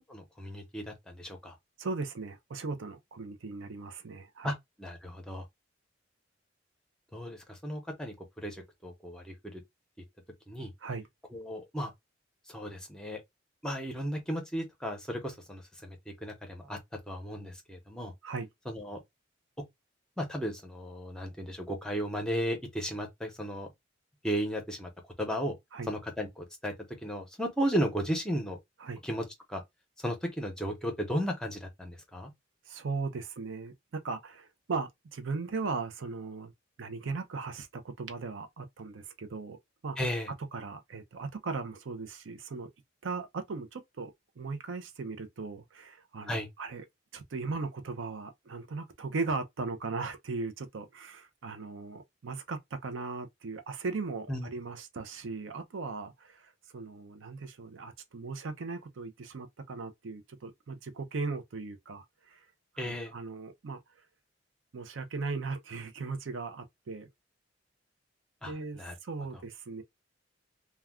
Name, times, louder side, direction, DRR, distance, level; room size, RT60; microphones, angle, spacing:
voice 1, 0.1-1.5 4.4-5.4 7.1-9.6 10.5-10.7 11.3-11.9 12.5-13.2 13.6-16.0 16.2-16.8 17.1-18.1 18.7-19.0 20.2-23.7 24.2-24.9 25.2-25.5 25.9-26.7 27.0-28.6 29.0-29.6 30.0-32.3 40.0-40.3 46.3-46.5 54.3-54.5 62.8-63.1 68.4-68.9, equal, 5° left, 0.7 m, -35 dB
voice 2, 1.8-4.5 10.8-11.0 18.2-18.5 25.7-25.9 28.8-29.0 32.7-36.5 36.8-39.6 39.8-40.0 40.5-42.7 43.0-46.8 47.1-62.4 62.7-63.8 64.7-67.1 68.5-69.8, right 4 dB, 75° right, 0.5 m, -38 dB
2.3 x 2.2 x 3.4 m
head